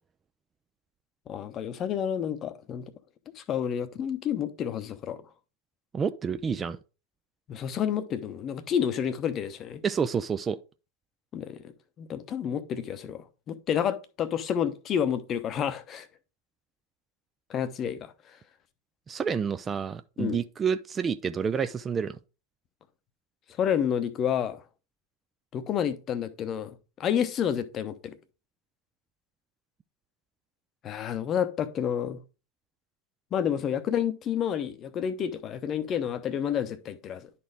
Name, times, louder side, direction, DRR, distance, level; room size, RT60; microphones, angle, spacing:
voice 1, 1.3-2.9 3.4-5.2 7.5-9.8 11.3-11.7 12.0-16.1 17.5-18.1 20.2-20.4 23.6-24.6 25.5-28.1 30.8-32.2 33.3-37.3, left 8 dB, 30° left, 0.8 m, -29 dB
voice 2, 5.9-6.8 9.8-10.6 19.1-22.2, right 6 dB, 20° right, 0.4 m, -29 dB
11.0 x 4.3 x 3.4 m
figure-of-eight pair, 90°, 0 cm